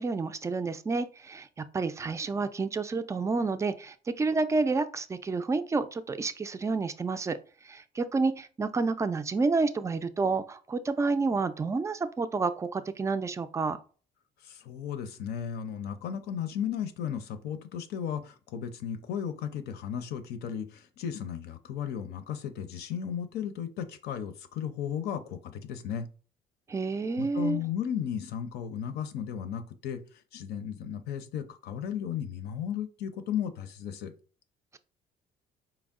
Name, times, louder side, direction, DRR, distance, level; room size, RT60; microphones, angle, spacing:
voice 1, 0.0-7.4 7.6-13.8 26.7-27.6, right 4 dB, 15° right, 11 dB, 0.3 m, -29 dB
voice 2, 14.4-26.1 27.2-30.0 30.3-34.1, left 8 dB, 75° left, 10 dB, 0.6 m, -35 dB
4.5 x 2.0 x 3.5 m, 0.39 s
cardioid pair, 110°, 17 cm